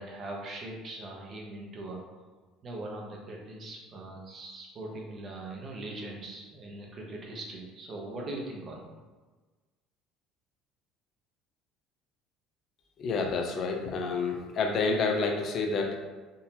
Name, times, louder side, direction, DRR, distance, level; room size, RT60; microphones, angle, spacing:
voice 1, 0.0-2.0 2.6-8.9, right 2 dB, 40° right, -1 dB, 0.9 m, -41 dB
voice 2, 13.0-16.0, left 4 dB, 55° left, 2 dB, 0.6 m, -29 dB
3.7 x 2.6 x 2.8 m, 1.3 s
supercardioid pair, 95°, 0 cm